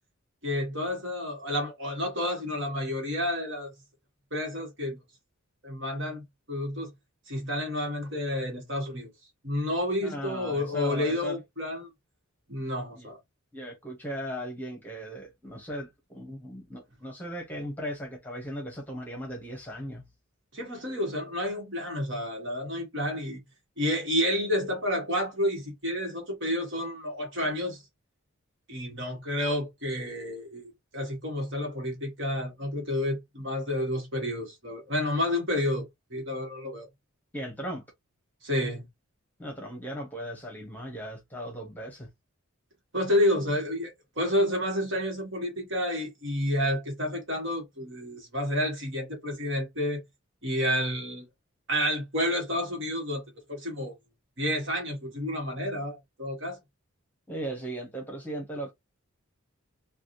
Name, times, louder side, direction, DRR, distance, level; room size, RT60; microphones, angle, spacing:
voice 1, 0.4-3.7 4.3-5.0 5.6-6.9 7.3-9.1 9.4-11.9 12.5-13.2 20.5-23.4 23.8-27.8 28.7-36.9 38.4-38.9 42.9-50.0 50.4-51.3 51.7-53.2 53.5-53.9 54.4-56.6, left 1 dB, 55° right, 1.5 m, -30 dB
voice 2, 10.0-11.4 13.0-13.1 13.5-20.0 37.3-37.8 39.4-42.1 57.3-58.7, equal, 10° left, 1.0 m, -37 dB
3.4 x 2.4 x 2.6 m
head